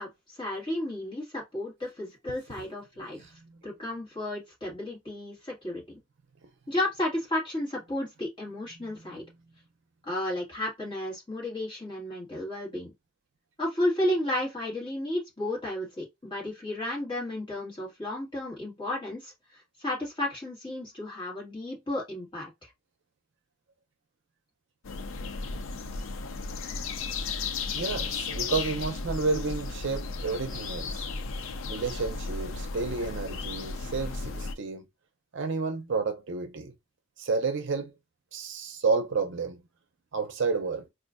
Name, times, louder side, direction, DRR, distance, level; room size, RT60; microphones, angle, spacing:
voice 1, 0.0-3.3 3.6-6.0 6.7-9.2 10.0-12.9 13.6-22.7, left 1 dB, 25° left, 1.8 m, -33 dB
voice 2, 3.2-3.6 6.4-6.5 8.7-9.2 27.7-31.0 31.7-34.9 35.3-36.7 37.2-37.9 38.3-39.6 40.1-40.9, right 4 dB, 60° right, 0.6 m, -31 dB
sound 1, 24.8-34.5, left 4 dB, 65° left, 0.5 m, -34 dB
4.3 x 2.5 x 2.4 m
head